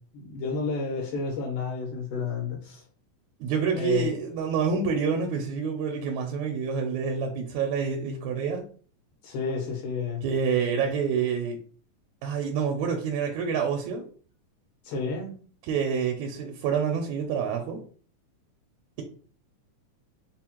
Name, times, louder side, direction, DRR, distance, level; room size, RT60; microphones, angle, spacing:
voice 1, 0.1-2.8 3.7-4.1 9.2-10.2 10.8-10.9 14.8-15.4, left 4 dB, 85° left, 2.3 m, -31 dB
voice 2, 3.4-8.6 10.2-11.6 12.2-14.0 15.7-17.8, right 6 dB, 80° right, 1.7 m, -27 dB
4.9 x 2.1 x 2.9 m
omnidirectional pair, 3.5 m